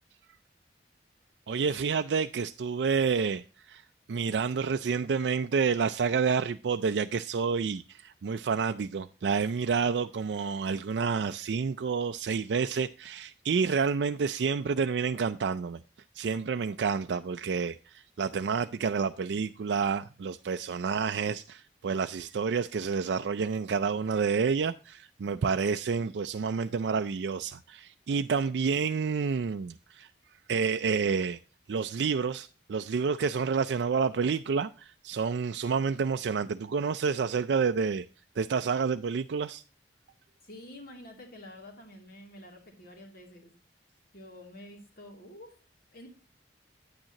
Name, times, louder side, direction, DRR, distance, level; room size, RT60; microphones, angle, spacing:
voice 1, 1.5-3.8 4.1-15.8 16.1-30.1 30.5-31.4 31.7-38.0 38.4-39.6, right 5 dB, 70° right, 0.4 m, -29 dB
voice 2, 40.4-43.5 44.1-45.5 45.9-46.1, left 1 dB, 55° left, 2.7 m, -48 dB
9.5 x 8.9 x 2.9 m
head